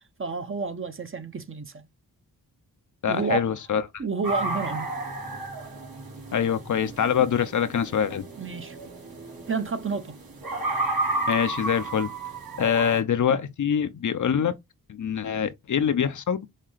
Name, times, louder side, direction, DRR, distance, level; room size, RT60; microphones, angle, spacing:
voice 1, 0.2-1.8 3.1-3.5 4.0-4.9 8.4-8.8 9.5-10.2, right 4 dB, 35° right, 0.8 m, -30 dB
voice 2, 3.0-4.0 6.3-8.3 11.3-12.1 12.6-14.6 14.9-16.4, left 8 dB, 50° left, 0.6 m, -24 dB
sound 1, 4.2-13.0, right 2 dB, 65° right, 1.7 m, -32 dB
5.7 x 2.2 x 3.1 m
cardioid pair, 60°, 38 cm